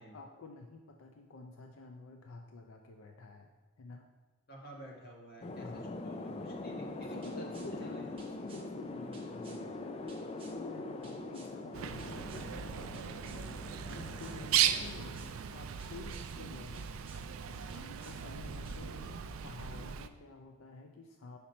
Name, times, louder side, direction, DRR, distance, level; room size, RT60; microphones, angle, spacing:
voice 1, 0.0-3.5 3.8-4.1 5.6-6.0 7.0-13.1 13.9-16.9 17.5-19.1 19.4-21.4, left 3 dB, 85° left, 4 dB, 0.5 m, -51 dB
voice 2, 4.5-8.1, equal, 50° left, -1 dB, 1.3 m, -51 dB
sound 1, 5.4-14.9, left 2 dB, 30° left, 0.3 m, -43 dB
sound 2, 7.2-7.7 8.2-8.6 9.1-9.6 10.1-10.6 11.0-11.5 12.0-12.5 12.9-13.4 13.9-14.4 14.8-15.3 15.8-16.3 16.7-17.2 17.7-18.2 18.6-18.8, right 4 dB, 25° right, 0.9 m, -57 dB
Bird, 11.7-20.1, right 9 dB, 80° right, 0.4 m, -37 dB
5.9 x 5.2 x 4.2 m, 1.3 s
head